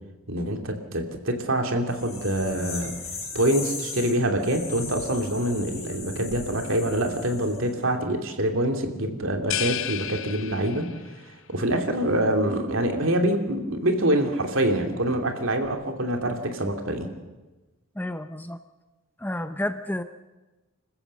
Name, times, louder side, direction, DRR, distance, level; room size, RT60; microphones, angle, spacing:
voice 1, 0.3-2.9 3.3-10.9 11.5-17.1, right 1 dB, 65° right, 4 dB, 2.6 m, -25 dB
sound 1, 1.9-7.7, left 4 dB, 30° left, 6.4 m, -38 dB
sound 2, 9.5-11.2, left 12 dB, 60° left, 0.8 m, -32 dB
voice 2, 18.0-18.6 19.2-20.0, left 1 dB, 10° left, 10 dB, 0.6 m, -30 dB
26.5 x 14.5 x 7.6 m, 1.2 s
head